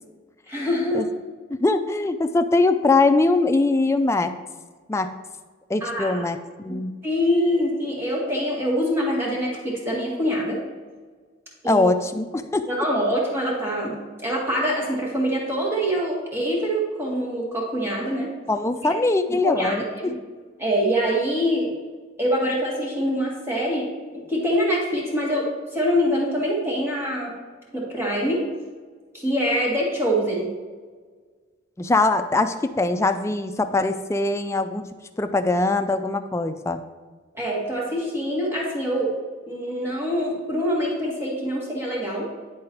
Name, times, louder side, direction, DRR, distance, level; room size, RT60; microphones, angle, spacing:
voice 1, 0.5-1.1 5.8-6.2 6.6-10.6 11.6-11.9 12.6-18.3 19.4-20.1 20.6-21.7 22.2-27.4 27.7-28.4 29.1-30.5 37.3-39.1 39.5-42.3, equal, 10° right, -4 dB, 1.7 m, -25 dB
voice 2, 1.6-4.3 4.9-5.2 5.7-6.9 11.7-12.7 18.5-20.2 31.8-34.9 35.2-36.8, left 2 dB, 15° left, 8 dB, 0.3 m, -22 dB
10.0 x 3.8 x 4.4 m, 1.4 s
head